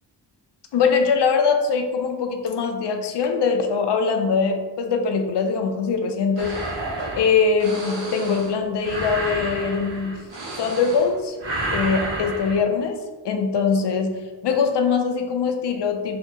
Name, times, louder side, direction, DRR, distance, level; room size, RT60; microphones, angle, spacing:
voice 1, 0.7-6.6 7.2-10.2 10.6-11.4 11.7-13.0 13.2-16.2, left 5 dB, 70° left, 5 dB, 0.5 m, -22 dB
sound 1, 6.4-11.1 11.4-12.6, right 2 dB, 85° right, 1.0 m, -30 dB
2.8 x 2.7 x 3.5 m, 1.3 s
wide cardioid pair, 120°, 43 cm